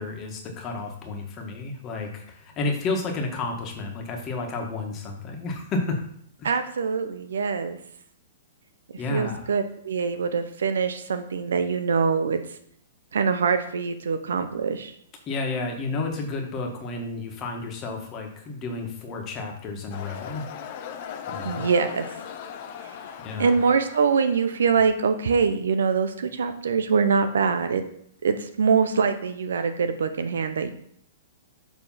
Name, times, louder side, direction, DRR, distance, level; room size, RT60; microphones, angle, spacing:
voice 1, 0.0-6.0 6.4-6.5 9.0-9.5 15.3-20.5 21.3-21.6 23.2-23.5, left 3 dB, 25° left, 1 dB, 1.5 m, -31 dB
voice 2, 6.4-7.8 9.1-12.4 13.1-14.9 21.4-22.1 23.4-27.8 28.2-30.7, right 5 dB, 90° right, 9 dB, 0.8 m, -24 dB
sound 1, 19.9-24.7, left 8 dB, 45° left, 0.7 m, -38 dB
7.3 x 3.3 x 5.7 m, 0.66 s
hypercardioid pair, 150°, 0 cm